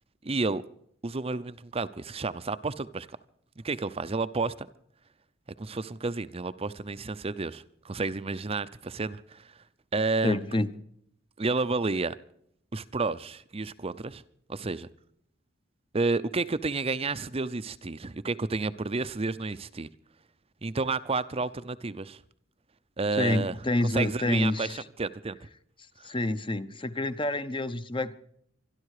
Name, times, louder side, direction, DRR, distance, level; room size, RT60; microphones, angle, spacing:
voice 1, 0.2-0.6 1.0-3.1 3.6-4.7 5.6-9.4 9.9-10.4 11.4-12.1 12.7-14.2 14.5-14.9 15.9-19.9 20.6-22.2 23.0-23.5 23.9-24.7 25.0-25.4, right 3 dB, 30° right, 0.6 m, -30 dB
voice 2, 10.2-10.7 23.1-24.8 26.0-28.1, left 1 dB, 25° left, 0.9 m, -28 dB
25.0 x 11.5 x 4.9 m
head